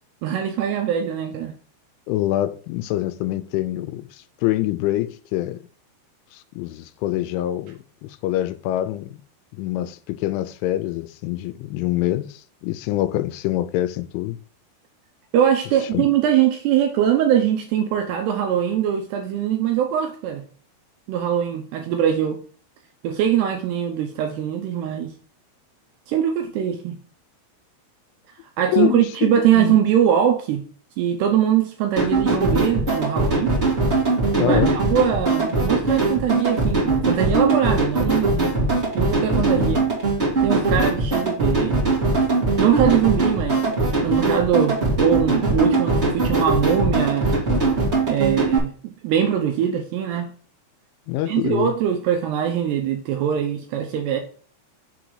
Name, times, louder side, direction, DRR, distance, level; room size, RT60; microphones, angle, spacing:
voice 1, 0.2-1.5 15.3-20.4 21.1-22.4 23.0-25.1 26.1-27.0 28.6-30.6 31.0-33.5 34.4-38.5 38.9-39.8 40.4-41.8 42.6-47.3 48.1-50.3 51.3-54.2, right 9 dB, 80° right, 2.5 m, -22 dB
voice 2, 2.1-4.1 4.4-5.7 6.3-9.2 9.5-14.4 15.9-16.1 28.7-29.8 32.0-32.1 34.4-34.7 39.6-39.8 51.1-51.7, left 14 dB, 90° left, 3.0 m, -25 dB
sound 1, 32.0-48.6, right 2 dB, 40° right, 0.9 m, -21 dB
6.8 x 3.9 x 4.7 m
omnidirectional pair, 5.4 m